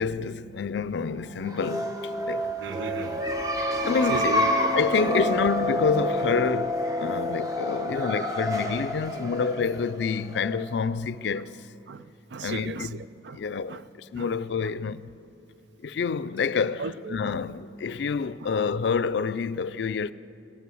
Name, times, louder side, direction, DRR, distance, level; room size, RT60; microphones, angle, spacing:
voice 1, 0.0-2.5 3.8-4.4 4.7-11.6 12.4-13.0 13.3-15.1 15.8-16.8 17.1-20.1, left 5 dB, 75° left, 0.4 m, -28 dB
sound 1, 1.4-10.9, left 1 dB, 20° right, 1.0 m, -28 dB
voice 2, 2.6-3.3 4.1-4.8 5.2-5.3 11.9-13.4 13.7-13.9 14.2-14.3 16.8-17.4 18.4-18.5, right 4 dB, 75° right, 0.4 m, -36 dB
18.0 x 8.6 x 7.7 m
head